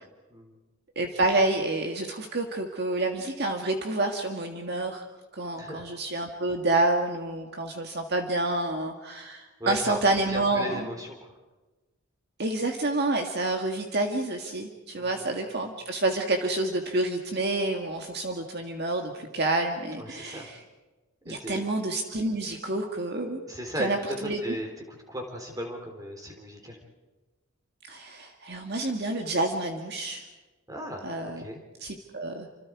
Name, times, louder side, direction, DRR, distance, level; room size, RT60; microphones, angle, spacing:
voice 1, 1.0-5.1 5.3-10.9 12.4-20.6 21.3-23.4 23.8-24.4 27.9-30.2 31.0-31.4 31.8-32.5, right 2 dB, 50° right, 3 dB, 1.9 m, -28 dB
voice 2, 5.6-5.9 9.6-10.0 10.3-11.3 15.0-15.2 20.0-20.5 21.2-21.6 23.5-26.8 30.7-31.0 31.4-31.6, equal, 15° right, 3 dB, 4.1 m, -36 dB
29.0 x 26.5 x 4.9 m, 1.2 s
head